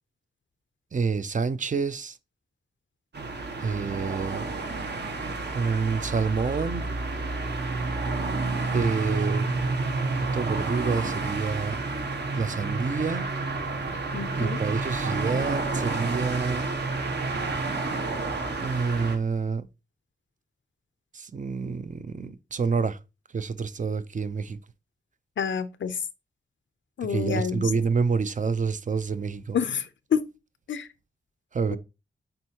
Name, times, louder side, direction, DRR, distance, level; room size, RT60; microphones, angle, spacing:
voice 1, 0.9-2.2 3.6-4.5 5.5-6.9 8.7-9.5 10.2-11.8 12.4-13.3 14.3-16.7 18.6-19.7 21.1-23.0 23.3-24.6 27.1-29.6 31.5-31.8, right 5 dB, 45° right, 0.5 m, -28 dB
sound 1, 3.1-19.2, right 3 dB, 65° right, 1.2 m, -30 dB
voice 2, 14.1-14.6 25.4-26.0 27.0-27.6 29.5-30.2 30.7-30.9 31.7-31.8, left 7 dB, 90° left, 0.6 m, -28 dB
7.8 x 4.4 x 2.8 m
wide cardioid pair, 105°, 19 cm